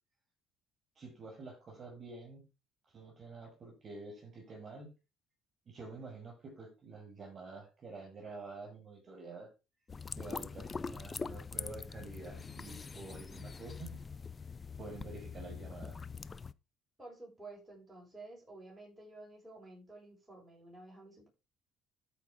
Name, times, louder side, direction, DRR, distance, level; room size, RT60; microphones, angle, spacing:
voice 1, 1.0-2.4 2.9-4.9 5.7-9.5 10.2-14.0 14.8-16.0, right 3 dB, 35° right, 0 dB, 6.7 m, -48 dB
sound 1, 9.9-16.5, left 5 dB, 25° left, 0.5 m, -43 dB
voice 2, 17.0-21.3, right 2 dB, 5° right, -3 dB, 7.3 m, -52 dB
13.5 x 5.1 x 5.0 m, 0.29 s
cardioid pair, 120°, 0 cm